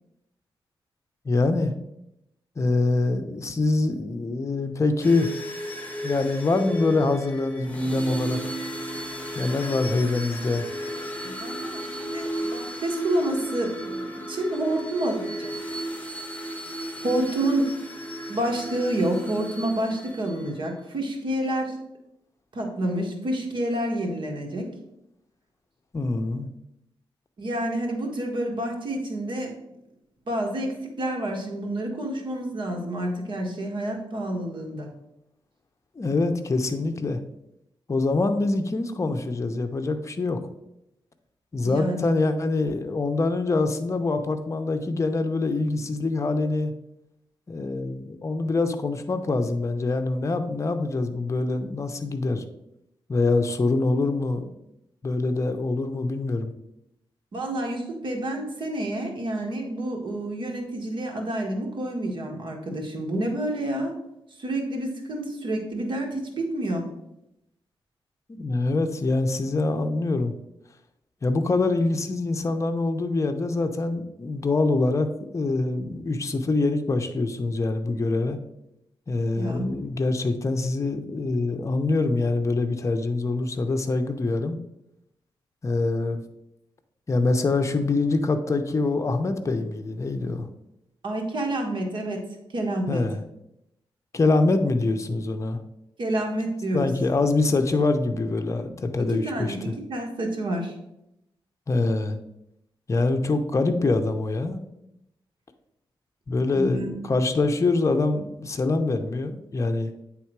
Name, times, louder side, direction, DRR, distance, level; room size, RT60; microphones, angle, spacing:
voice 1, 1.2-1.7 2.6-5.3 6.0-8.5 9.3-10.7 25.9-26.5 36.0-37.2 37.9-40.4 41.5-46.7 47.5-52.4 53.1-54.5 55.0-56.5 68.3-70.3 71.2-75.1 75.3-78.4 79.1-84.6 85.6-86.2 87.1-90.5 92.9-93.2 94.1-95.6 96.7-99.7 101.7-102.2 102.9-104.7 106.3-109.9, left 3 dB, 35° left, 6 dB, 0.7 m, -24 dB
sound 1, 5.0-20.6, right 1 dB, 15° left, 1.5 m, -34 dB
voice 2, 11.2-15.5 17.0-17.7 18.3-21.8 22.5-24.7 27.4-29.5 30.3-34.9 41.6-42.1 57.3-63.9 64.4-66.9 79.3-79.7 91.0-92.2 92.5-93.0 96.0-96.9 99.0-100.7 106.5-107.1, right 1 dB, 60° right, 1 dB, 1.5 m, -29 dB
8.6 x 3.6 x 4.6 m, 0.85 s
wide cardioid pair, 95°, 9 cm